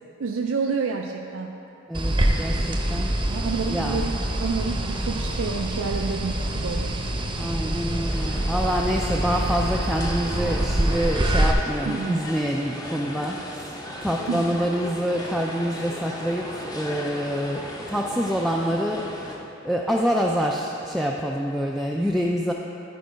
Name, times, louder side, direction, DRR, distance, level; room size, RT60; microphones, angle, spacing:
voice 1, 0.2-1.6 2.9-4.1 4.4-7.0 11.9-12.2 14.3-14.6, right 5 dB, 85° right, 2 dB, 0.4 m, -29 dB
voice 2, 1.9-3.1 3.7-4.1 7.4-13.8 14.0-22.5, equal, ahead, -1 dB, 0.3 m, -26 dB
sound 1, 1.9-11.5, right 1 dB, 25° right, 0.7 m, -25 dB
sound 2, 8.1-19.4, left 1 dB, 20° left, 0.7 m, -37 dB
11.0 x 4.6 x 5.2 m, 2.9 s
head